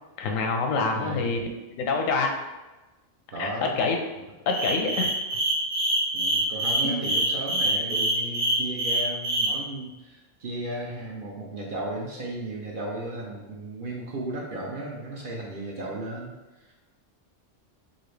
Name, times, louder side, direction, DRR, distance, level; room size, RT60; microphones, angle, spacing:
voice 1, 0.2-1.4 1.8-2.4 3.4-4.0 4.5-5.4 6.8-7.0, left 4 dB, 90° left, 3 dB, 1.0 m, -26 dB
voice 2, 0.8-1.3 3.3-3.8 6.1-16.7, right 1 dB, 55° right, -2 dB, 0.6 m, -35 dB
sound 1, 4.5-9.5, right 1 dB, 85° right, 1.6 m, -25 dB
4.0 x 2.5 x 3.1 m, 1.1 s
omnidirectional pair, 1.3 m